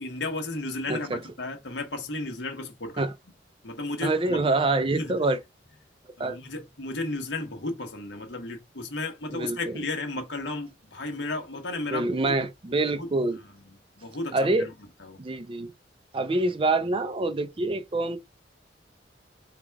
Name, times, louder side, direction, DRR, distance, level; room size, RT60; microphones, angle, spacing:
voice 1, 0.0-3.1 3.6-4.4 4.9-5.2 6.2-12.3 13.0-13.1 13.7-14.7 15.0-15.2, left 2 dB, 70° left, 1.2 m, -34 dB
voice 2, 0.9-1.2 3.0-3.1 4.0-5.4 6.2-6.4 9.3-9.8 11.9-13.4 14.3-14.7 15.2-15.7 16.1-18.2, right 2 dB, 30° right, 0.5 m, -26 dB
3.9 x 2.4 x 4.5 m
head